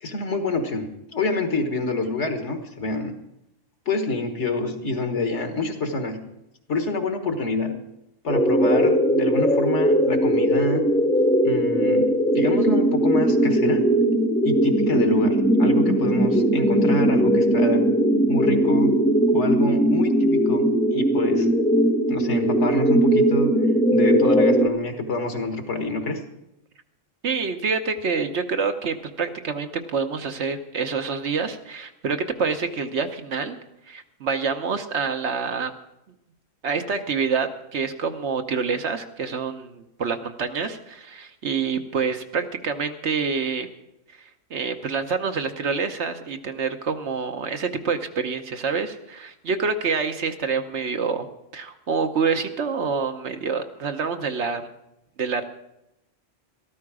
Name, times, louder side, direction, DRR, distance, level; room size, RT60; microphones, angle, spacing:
voice 1, 0.0-3.1 3.9-6.2 6.7-7.8 8.2-10.9 11.4-13.9 14.4-17.8 18.3-18.9 19.3-20.6 20.9-21.5 22.1-23.5 23.9-26.2, left 2 dB, 60° left, 6 dB, 1.7 m, -27 dB
sound 1, 8.3-24.7, right 1 dB, 5° left, 1.0 m, -19 dB
voice 2, 27.2-33.6 33.9-35.7 36.6-43.7 44.5-51.3 51.5-54.7 55.2-55.4, right 5 dB, 60° right, 7 dB, 1.1 m, -27 dB
13.5 x 13.0 x 4.9 m, 0.86 s
omnidirectional pair, 1.3 m